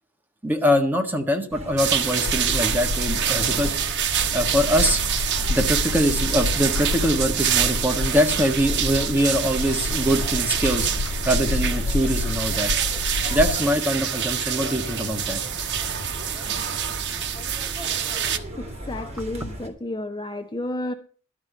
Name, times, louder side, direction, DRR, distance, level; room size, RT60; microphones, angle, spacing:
voice 1, 0.4-3.7 4.3-5.0 5.5-10.9 11.2-12.7 13.3-15.4 15.7-16.1 17.8-17.9, equal, 10° right, 1.5 m, -23 dB
sound 1, 1.5-19.7, right 1 dB, 30° right, 2.8 m, -37 dB
sound 2, 1.8-18.4, right 9 dB, 55° right, 1.0 m, -26 dB
Bird, 2.2-13.6, left 3 dB, 85° left, 0.5 m, -29 dB
voice 2, 18.6-20.9, left 1 dB, 20° left, 0.7 m, -31 dB
12.5 x 5.3 x 8.4 m
head